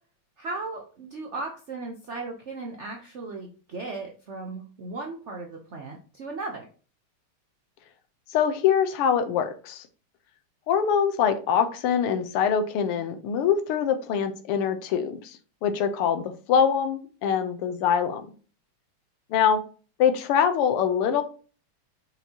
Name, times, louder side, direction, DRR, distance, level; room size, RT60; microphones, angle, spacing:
voice 1, 0.4-6.7, right 3 dB, 65° right, 1 dB, 0.7 m, -36 dB
voice 2, 8.3-9.9 10.7-18.3 19.3-19.6 20.0-21.2, left 7 dB, 90° left, 9 dB, 1.7 m, -24 dB
5.8 x 5.7 x 2.8 m, 0.38 s
omnidirectional pair, 2.4 m